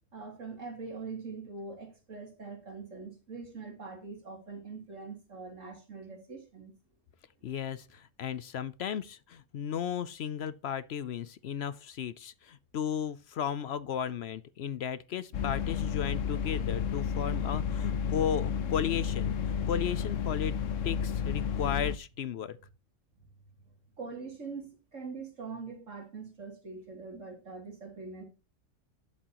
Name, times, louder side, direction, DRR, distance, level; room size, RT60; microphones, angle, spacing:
voice 1, 0.1-6.7 23.4-23.5 24.0-28.2, right 4 dB, 75° right, 3.3 m, -43 dB
voice 2, 7.4-20.6 20.8-22.6, left 8 dB, 65° left, 0.8 m, -35 dB
sound 1, 15.3-22.0, left 7 dB, 80° left, 1.2 m, -31 dB
11.0 x 7.6 x 3.0 m
omnidirectional pair, 1.3 m